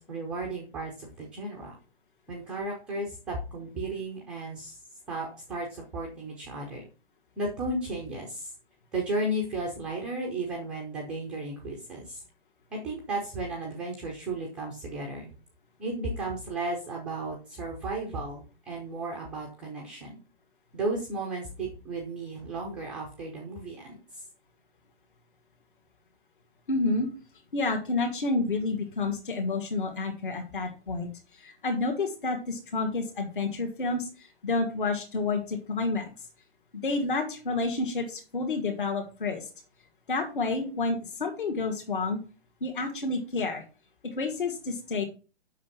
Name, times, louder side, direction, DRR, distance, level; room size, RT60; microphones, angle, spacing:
voice 1, 0.0-1.7 2.3-4.8 5.1-6.8 7.4-8.5 8.9-12.2 12.7-15.3 15.8-20.2 20.7-24.2, right 2 dB, 5° right, -2 dB, 0.5 m, -34 dB
voice 2, 26.7-27.1 27.5-36.3 36.7-39.5 40.1-42.2 42.6-43.6 44.0-45.1, left 3 dB, 50° left, 3 dB, 2.0 m, -29 dB
7.3 x 6.1 x 5.8 m, 0.34 s
figure-of-eight pair, 130°, 33 cm